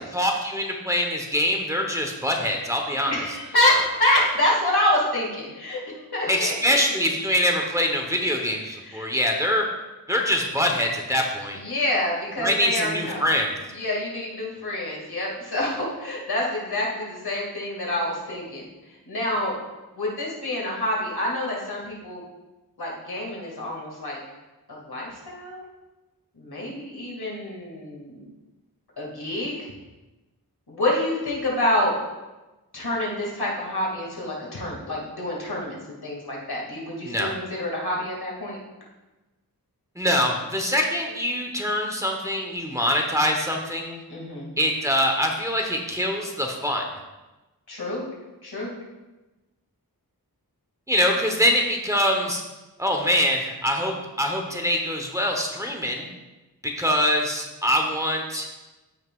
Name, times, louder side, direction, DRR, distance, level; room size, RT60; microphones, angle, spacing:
voice 1, 0.1-3.2 6.3-9.6 10.1-11.6 12.4-13.6 37.0-37.3 40.0-44.0 44.6-46.8 50.9-52.4 52.8-56.1 56.6-58.5, equal, 10° right, 1 dB, 1.1 m, -24 dB
voice 2, 3.1-5.8 6.1-6.8 8.8-9.1 11.5-13.2 13.7-18.6 19.1-19.6 20.0-22.2 22.8-24.2 24.7-25.6 26.3-28.1 29.0-29.6 30.7-31.9 32.7-38.6 44.1-44.5 47.7-48.1 48.4-48.7, left 1 dB, 85° left, -3 dB, 2.4 m, -27 dB
14.0 x 5.9 x 2.5 m, 1.1 s
wide cardioid pair, 85°, 37 cm